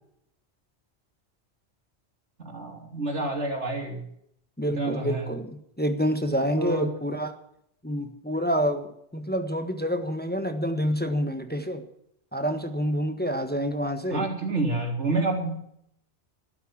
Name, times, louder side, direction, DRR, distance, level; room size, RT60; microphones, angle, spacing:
voice 1, 2.4-4.0 4.8-5.3 6.6-6.9 14.1-15.6, right 2 dB, 90° right, 2 dB, 3.8 m, -28 dB
voice 2, 4.6-7.3 7.8-11.8 12.3-14.3, equal, 10° left, 7 dB, 1.4 m, -28 dB
13.0 x 12.5 x 7.4 m, 0.73 s
omnidirectional pair, 1.2 m